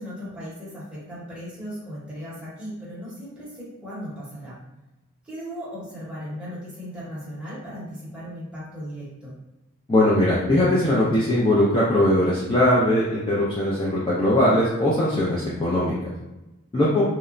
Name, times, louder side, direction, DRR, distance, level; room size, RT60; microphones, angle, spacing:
voice 1, 0.0-4.6 5.2-9.3 16.8-17.0, equal, 5° right, -8 dB, 0.8 m, -37 dB
voice 2, 9.9-15.9 16.7-17.0, left 1 dB, 25° left, -7 dB, 0.3 m, -20 dB
2.8 x 2.1 x 2.5 m, 1.0 s
head